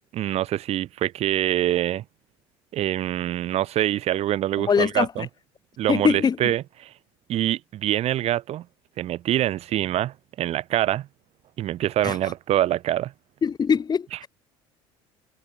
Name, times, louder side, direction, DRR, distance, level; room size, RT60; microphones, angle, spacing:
voice 1, 0.1-2.0 2.7-5.3 5.8-6.9 7.3-8.7 9.0-11.1 11.6-13.1, right 13 dB, 55° right, 2.2 m, -25 dB
voice 2, 4.6-5.3 5.9-6.4 12.0-12.2 13.4-14.3, left 6 dB, 35° left, 3.2 m, -22 dB
supercardioid pair, 85°, 12 cm